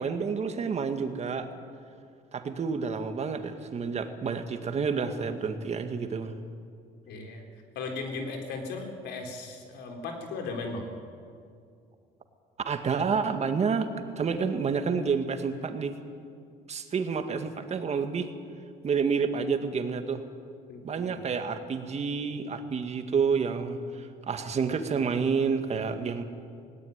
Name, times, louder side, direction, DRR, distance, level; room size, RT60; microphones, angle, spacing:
voice 1, 0.0-1.5 2.3-6.3 12.7-13.9 14.2-15.9 16.7-18.3 18.8-20.2 20.8-26.2, right 5 dB, 40° right, 7 dB, 2.0 m, -29 dB
voice 2, 7.1-7.4 7.8-10.9 20.7-21.2, left 3 dB, 85° left, 3 dB, 4.0 m, -37 dB
18.5 x 18.0 x 9.6 m, 2.3 s
cardioid pair, 110°, 17 cm